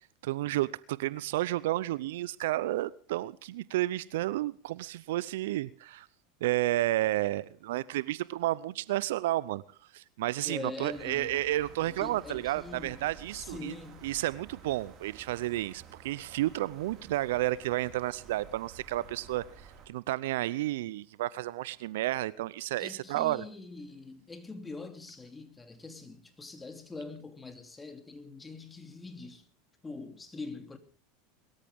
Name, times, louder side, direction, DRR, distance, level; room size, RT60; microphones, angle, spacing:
voice 1, 0.2-6.1 6.4-9.6 9.9-13.7 14.0-19.4 19.9-23.4, right 16 dB, 70° right, 0.6 m, -31 dB
voice 2, 10.4-11.4 11.8-13.1 13.3-14.2 22.8-29.4 29.8-30.8, left 3 dB, 15° left, 2.9 m, -43 dB
sound 1, 10.9-19.9, right 6 dB, 40° right, 4.8 m, -52 dB
23.0 x 13.5 x 3.6 m
hypercardioid pair, 90°, 0 cm